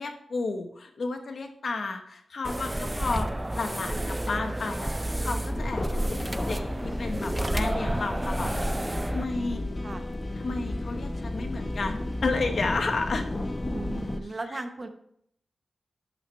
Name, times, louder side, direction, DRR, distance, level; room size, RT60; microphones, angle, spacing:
voice 1, 0.0-3.3 3.5-6.2 6.5-9.6 10.4-13.3, left 3 dB, 60° left, 6 dB, 1.1 m, -32 dB
sound 1, 2.4-9.2, right 1 dB, 15° right, 0.4 m, -30 dB
sound 2, 5.5-14.2, left 1 dB, 25° left, 0.8 m, -33 dB
voice 2, 13.7-14.9, right 2 dB, 35° right, 7 dB, 0.9 m, -36 dB
11.5 x 6.4 x 3.3 m, 0.71 s
wide cardioid pair, 120°, 0 cm